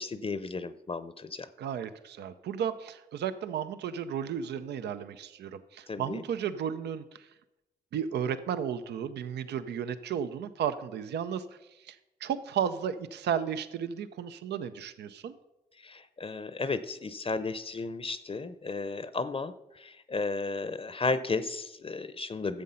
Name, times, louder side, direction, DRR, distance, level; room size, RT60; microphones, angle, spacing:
voice 1, 0.0-1.5 5.9-6.2 15.8-22.6, left 3 dB, 35° left, 14 dB, 0.6 m, -34 dB
voice 2, 1.6-7.3 7.9-15.3, right 8 dB, 90° right, 12 dB, 0.5 m, -34 dB
11.5 x 7.5 x 5.6 m, 0.97 s
cardioid pair, 55°, 17 cm